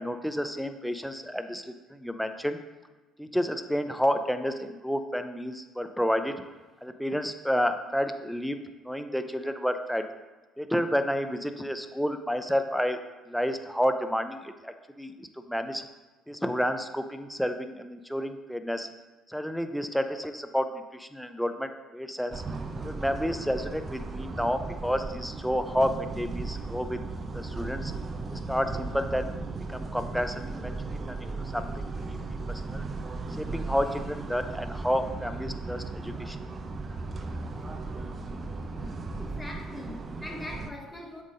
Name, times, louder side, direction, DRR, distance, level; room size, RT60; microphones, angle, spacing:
voice 1, 0.0-2.6 3.2-6.4 6.8-10.1 10.6-13.0 13.3-15.8 16.3-18.9 19.3-22.4 22.8-27.0 27.3-27.9 28.3-29.3 29.7-32.2 32.5-32.9 33.3-36.4, equal, ahead, 8 dB, 0.7 m, -30 dB
sound 1, 22.3-40.7, right 3 dB, 35° right, 0.7 m, -36 dB
voice 2, 39.2-41.2, left 1 dB, 20° left, 1 dB, 1.2 m, -41 dB
7.3 x 3.6 x 5.0 m, 1.2 s
hypercardioid pair, 55°, 0 cm